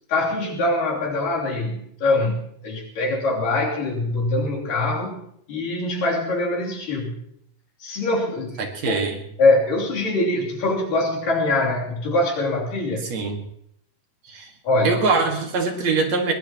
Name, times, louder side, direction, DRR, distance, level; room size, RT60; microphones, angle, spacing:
voice 1, 0.1-5.2 5.5-7.3 7.8-9.0 9.4-13.1 14.6-15.0, left 2 dB, 80° left, -3 dB, 4.7 m, -23 dB
voice 2, 8.6-9.2 13.1-13.4 14.3-14.5 14.8-16.3, right 4 dB, 55° right, 3 dB, 2.8 m, -23 dB
21.5 x 20.0 x 3.0 m, 0.72 s
omnidirectional pair, 3.9 m